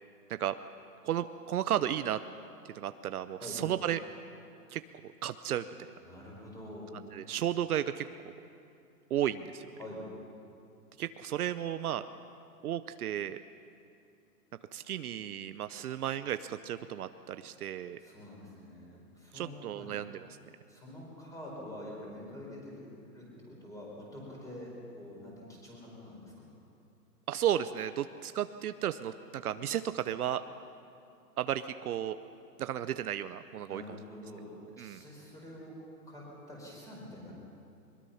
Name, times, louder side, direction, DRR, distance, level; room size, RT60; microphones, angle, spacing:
voice 1, 1.0-2.2 2.6-4.0 4.7-4.8 5.2-5.9 7.1-8.1 9.1-9.7 11.0-12.1 12.6-13.4 14.7-18.0 19.3-20.3 27.3-30.4 31.4-32.2 32.6-33.8 34.8-35.0, right 11 dB, 65° right, 11 dB, 0.8 m, -33 dB
voice 2, 6.0-6.9 9.8-10.0 18.0-19.9 20.7-22.9 23.1-26.5 33.7-35.7 36.0-37.3, left 1 dB, 5° left, -4 dB, 5.1 m, -46 dB
22.5 x 22.0 x 5.7 m, 2.5 s
hypercardioid pair, 160°, 48 cm